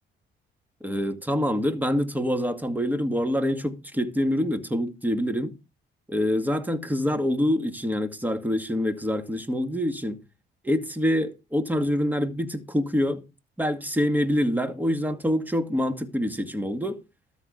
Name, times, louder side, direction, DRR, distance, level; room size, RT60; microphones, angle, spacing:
voice 1, 0.8-5.5 6.1-10.2 10.6-13.2 13.6-17.0, equal, 10° right, 2.0 m, -26 dB
13.0 x 4.5 x 8.1 m
cardioid pair, 90°, 20 cm